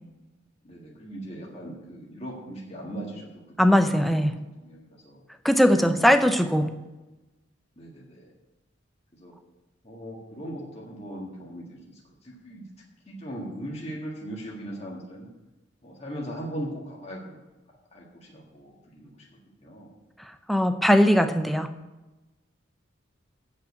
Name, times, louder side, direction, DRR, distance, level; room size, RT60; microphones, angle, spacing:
voice 1, 0.6-3.3 3.6-4.0 4.3-5.9 6.7-6.8 7.8-8.3 9.1-9.3 9.8-12.6 13.1-15.3 15.8-17.4 17.9-20.0, right 1 dB, 30° left, -3 dB, 1.7 m, -39 dB
voice 2, 3.6-4.3 5.4-6.7 20.5-21.7, equal, ahead, 8 dB, 0.6 m, -20 dB
8.8 x 5.8 x 8.1 m, 1.1 s
head